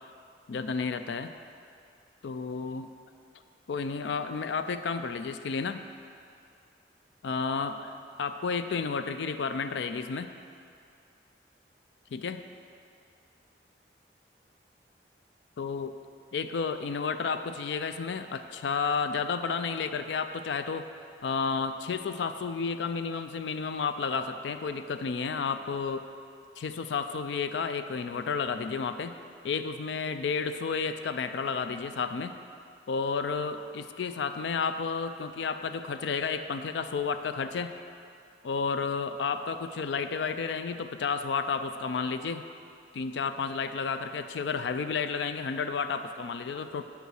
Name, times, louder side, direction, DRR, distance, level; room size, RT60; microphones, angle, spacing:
voice 1, 0.5-1.3 2.2-2.9 3.7-5.8 7.2-10.3 12.1-12.4 15.6-15.9 16.3-20.9 21.2-26.1 26.6-29.2 29.4-32.3 32.9-37.7 38.4-42.4 42.9-46.8, left 5 dB, 75° left, 9 dB, 0.4 m, -31 dB
8.2 x 4.9 x 6.4 m, 2.4 s
head